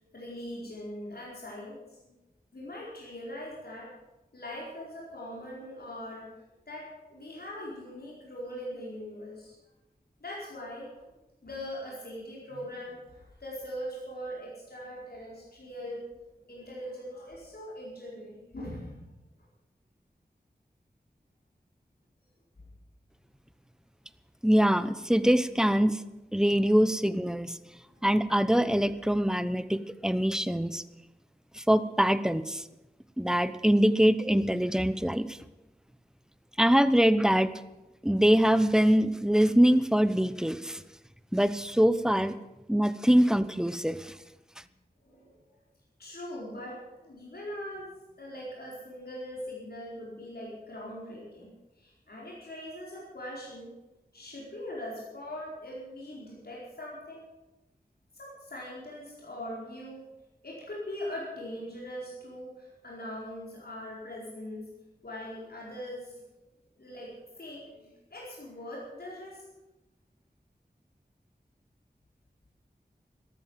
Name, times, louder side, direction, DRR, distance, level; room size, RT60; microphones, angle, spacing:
voice 1, 0.1-2.1 2.5-3.9 4.3-6.3 6.7-9.5 10.2-10.9 11.4-16.1 16.5-19.1 27.9-28.1 45.0-45.3 46.0-47.9 48.2-53.7 54.1-57.2 58.1-60.1 60.4-64.7 65.0-66.2 66.8-69.5, left 1 dB, 75° left, -5 dB, 4.6 m, -41 dB
voice 2, 24.4-26.0 26.3-27.6 28.0-30.8 31.5-32.6 33.2-35.4 36.6-37.5 38.0-40.8 41.3-42.4 42.7-44.1, equal, 5° right, 13 dB, 0.8 m, -24 dB
13.5 x 13.0 x 7.5 m, 1.0 s
wide cardioid pair, 60°, 16 cm